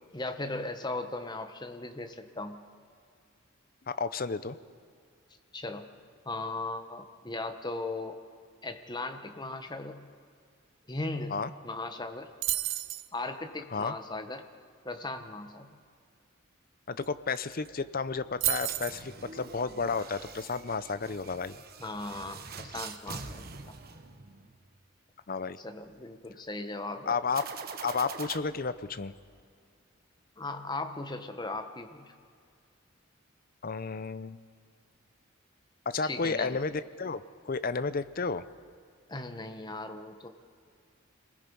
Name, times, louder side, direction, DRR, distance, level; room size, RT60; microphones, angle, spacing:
voice 1, 0.0-2.6 5.5-5.9 6.2-8.2 8.6-10.1 10.9-12.3 13.1-14.4 14.8-15.7 21.8-23.4 25.6-27.2 30.4-32.1 36.0-36.6 39.1-40.3, left 2 dB, 20° left, 7 dB, 1.2 m, -37 dB
voice 2, 3.9-4.6 11.3-11.5 13.7-13.9 16.9-21.6 25.3-25.6 27.1-27.4 27.8-29.1 33.6-34.4 35.9-38.4, left 4 dB, 45° left, 13 dB, 0.7 m, -32 dB
sound 1, 12.4-13.1 17.0-17.1 17.3-17.7 18.4-19.0, right 14 dB, 65° right, 0.7 m, -31 dB
sound 2, 18.5-24.6 27.3-28.4, right 5 dB, 45° right, 1.2 m, -44 dB
27.0 x 19.5 x 5.5 m, 2.2 s
head